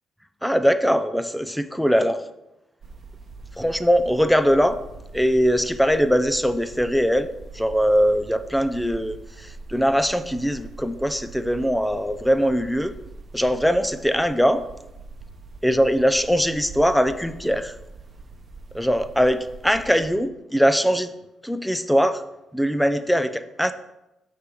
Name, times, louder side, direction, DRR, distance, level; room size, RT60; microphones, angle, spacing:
voice 1, 0.4-2.2 3.6-4.8 5.1-7.3 7.5-12.9 13.3-14.6 15.6-17.8 18.7-21.1 21.4-22.2 22.5-23.7, equal, ahead, 12 dB, 0.4 m, -21 dB
sound 1, 2.8-20.1, right 3 dB, 40° right, 0.8 m, -43 dB
6.6 x 3.3 x 6.1 m, 0.94 s
cardioid pair, 90°, 0 cm